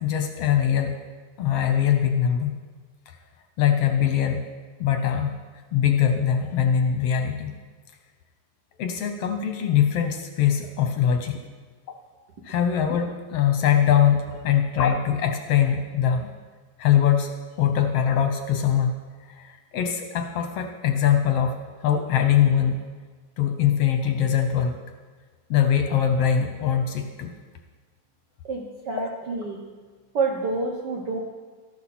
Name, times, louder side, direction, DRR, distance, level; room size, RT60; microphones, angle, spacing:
voice 1, 0.0-0.9 1.4-2.6 3.6-4.4 4.8-5.3 5.7-7.5 8.8-11.4 12.5-16.3 16.8-17.3 17.6-18.9 19.4-21.6 21.8-22.8 23.4-24.7 25.5-27.3, left 9 dB, 70° left, 6 dB, 1.5 m, -22 dB
voice 2, 28.5-29.6 30.1-31.2, right 3 dB, 80° right, 1 dB, 0.9 m, -28 dB
14.0 x 12.0 x 4.2 m, 1.5 s
omnidirectional pair, 3.5 m